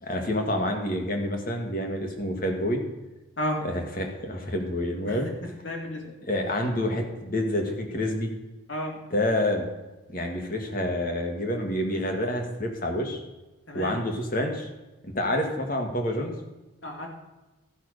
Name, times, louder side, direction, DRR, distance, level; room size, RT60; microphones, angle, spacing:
voice 1, 0.0-2.8 3.7-5.3 6.3-8.3 9.1-9.6 10.1-13.2 13.7-14.7 15.0-16.3, left 1 dB, 45° left, 3 dB, 1.7 m, -28 dB
voice 2, 5.6-6.0 8.7-9.0 13.7-14.0 16.8-17.1, left 1 dB, 75° left, 0 dB, 2.7 m, -32 dB
13.0 x 5.7 x 6.4 m, 1.1 s
head